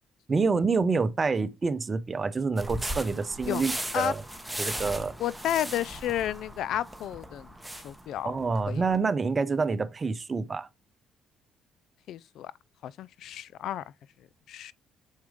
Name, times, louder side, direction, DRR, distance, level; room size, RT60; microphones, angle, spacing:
voice 1, 0.3-4.2 4.6-5.1 8.2-10.7, right 4 dB, 35° right, 0.8 m, -27 dB
sound 1, 2.6-9.0, right 1 dB, 5° right, 1.2 m, -38 dB
voice 2, 5.2-7.5 7.8-8.4 8.7-8.8 12.1-12.5 12.8-13.8 14.5-14.7, left 11 dB, 70° left, 0.3 m, -31 dB
6.4 x 4.5 x 3.6 m
supercardioid pair, 70°, 0 cm